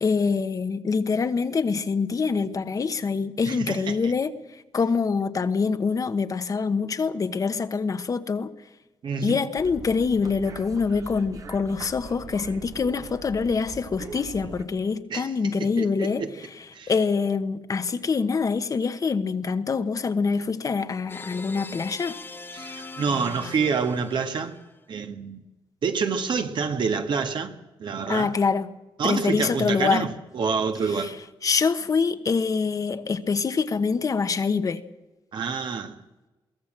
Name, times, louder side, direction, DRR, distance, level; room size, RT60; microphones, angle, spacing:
voice 1, 0.0-8.5 9.2-22.2 28.1-28.7 29.0-30.1 30.9-31.1 31.4-34.8, left 5 dB, 40° left, 1.2 m, -25 dB
voice 2, 3.5-4.1 9.0-9.4 15.1-15.3 15.6-16.3 16.7-16.9 22.5-24.6 24.9-25.4 25.8-27.5 27.8-28.3 29.0-31.2 35.3-36.0, right 5 dB, 60° right, 1.7 m, -27 dB
sound 1, 9.6-14.7, right 4 dB, 40° right, 1.4 m, -42 dB
sound 2, 21.1-24.8, left 3 dB, 25° left, 1.3 m, -41 dB
23.0 x 16.0 x 7.6 m
cardioid pair, 115°, 9 cm